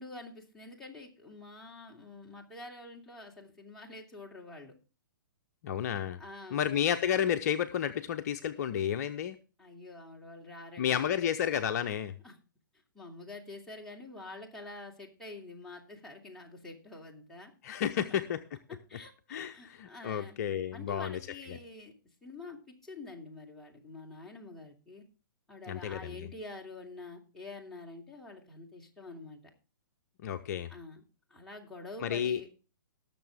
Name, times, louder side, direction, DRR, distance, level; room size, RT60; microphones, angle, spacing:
voice 1, 0.0-4.7 6.2-6.6 9.6-11.2 12.2-12.4 12.9-17.5 18.1-18.2 18.7-20.4 20.7-21.9 22.2-25.0 25.5-29.4 30.7-31.0 31.3-32.5, left 2 dB, 5° left, -3 dB, 2.9 m, -47 dB
voice 2, 5.6-6.2 6.5-9.4 10.8-12.1 17.6-18.4 19.3-21.2 21.5-21.6 25.7-26.3 30.2-30.7 32.0-32.5, left 9 dB, 50° left, 7 dB, 0.8 m, -31 dB
19.0 x 6.9 x 3.6 m, 0.33 s
figure-of-eight pair, 125°, 11 cm